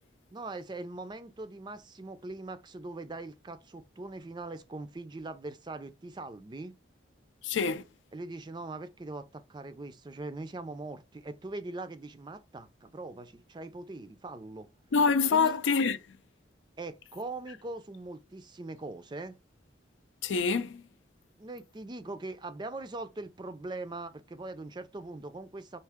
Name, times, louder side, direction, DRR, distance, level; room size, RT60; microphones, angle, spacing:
voice 1, 0.3-6.7 8.1-14.7 15.3-15.6 16.8-19.4 21.4-25.8, right 2 dB, 25° right, 0.4 m, -41 dB
voice 2, 7.4-7.8 14.9-16.0 20.2-20.8, left 5 dB, 90° left, 0.5 m, -26 dB
4.5 x 2.8 x 3.5 m
head